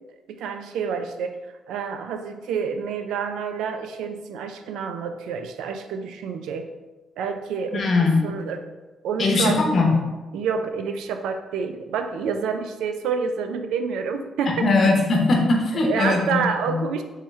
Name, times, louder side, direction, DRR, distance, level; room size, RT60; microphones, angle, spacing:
voice 1, 0.3-1.4 1.7-6.7 7.2-7.9 8.2-8.6 9.0-9.6 10.3-14.6 15.7-17.0, right 6 dB, 85° right, 6 dB, 0.3 m, -28 dB
voice 2, 7.7-8.3 9.2-10.0 14.6-16.8, left 3 dB, 45° left, 1 dB, 0.8 m, -20 dB
3.4 x 3.1 x 3.1 m, 1.2 s
cardioid pair, 90°, 0 cm